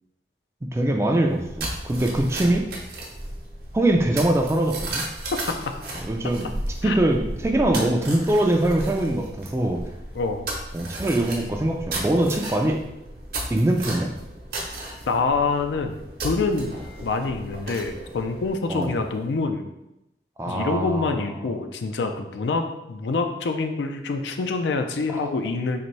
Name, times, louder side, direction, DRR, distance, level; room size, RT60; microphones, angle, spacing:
voice 1, 0.7-2.7 3.7-5.1 6.0-6.5 6.8-9.8 10.7-12.8 13.5-14.1 18.7-19.0 20.4-21.2, right 1 dB, 15° right, 2 dB, 0.3 m, -22 dB
sound 1, 1.2-19.2, right 1 dB, 60° right, 0.8 m, -35 dB
voice 2, 10.1-10.5 15.1-16.0 16.2-19.7 20.5-25.8, left 3 dB, 80° left, 6 dB, 0.4 m, -26 dB
4.0 x 2.6 x 3.1 m, 0.89 s
head